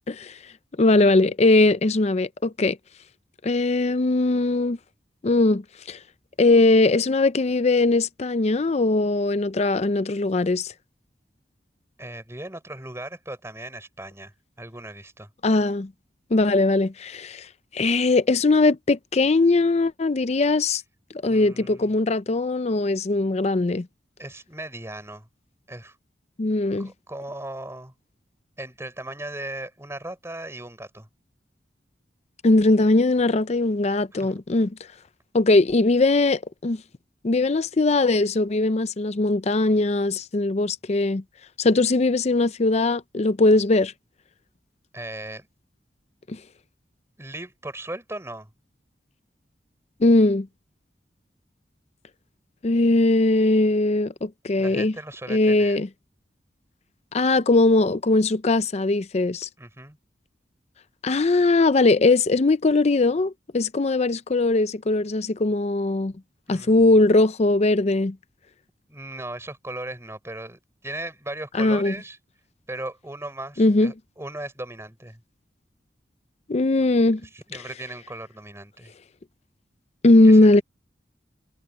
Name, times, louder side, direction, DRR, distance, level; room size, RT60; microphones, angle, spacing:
voice 1, 0.8-2.8 3.4-4.8 5.2-5.6 5.9-6.0 6.4-10.7 15.4-15.9 16.3-17.5 17.7-20.8 21.2-23.9 26.4-26.9 32.4-34.7 35.3-36.8 37.2-41.2 41.6-43.9 46.3-46.4 50.0-50.5 52.6-54.9 55.3-55.9 57.1-59.5 61.0-66.1 66.5-68.2 71.6-71.9 73.6-73.9 76.5-77.2 77.5-77.6 80.0-80.6, left 2 dB, 40° left, 0.5 m, -20 dB
voice 2, 12.0-15.3 21.3-21.9 24.2-25.3 25.7-25.9 26.8-27.9 28.6-31.1 34.1-34.3 44.9-45.5 47.2-48.5 54.6-55.8 59.6-60.0 66.5-66.9 68.9-72.2 72.7-75.2 77.2-78.9 80.2-80.6, right 1 dB, 15° right, 4.5 m, -37 dB
head